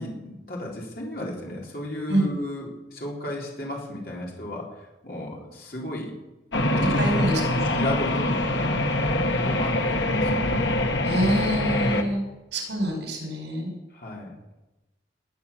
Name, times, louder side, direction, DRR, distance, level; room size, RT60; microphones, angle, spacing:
voice 1, 0.0-6.1 6.5-7.0 7.4-8.8 9.1-10.6 13.9-14.3, left 1 dB, 55° left, -2 dB, 3.9 m, -34 dB
sound 1, 6.5-12.0, left 1 dB, 90° left, 1.8 m, -24 dB
voice 2, 7.0-7.6 11.0-12.2 12.5-13.7, right 1 dB, 80° right, 2 dB, 5.1 m, -26 dB
20.5 x 8.7 x 7.2 m, 1.0 s
head